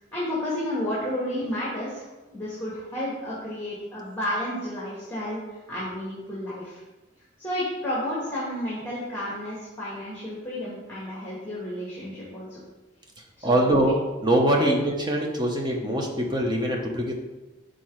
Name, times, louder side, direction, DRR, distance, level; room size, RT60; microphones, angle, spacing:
voice 1, 0.1-6.8 7.4-12.6 13.4-13.8 14.6-14.7, left 1 dB, 10° left, -8 dB, 1.5 m, -32 dB
voice 2, 13.2-13.9 14.2-17.1, right 1 dB, 20° right, 0 dB, 0.8 m, -23 dB
6.0 x 3.8 x 4.7 m, 1.1 s
head